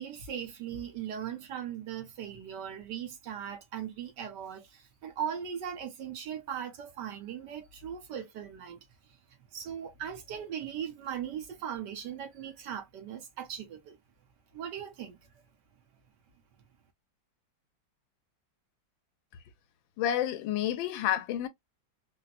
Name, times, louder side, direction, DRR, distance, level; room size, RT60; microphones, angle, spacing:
voice 1, 0.0-8.8 9.5-14.0 14.5-15.2, right 9 dB, 70° right, 1.4 m, -39 dB
voice 2, 20.0-21.5, left 11 dB, 80° left, 1.4 m, -29 dB
4.2 x 2.1 x 2.4 m
omnidirectional pair, 2.1 m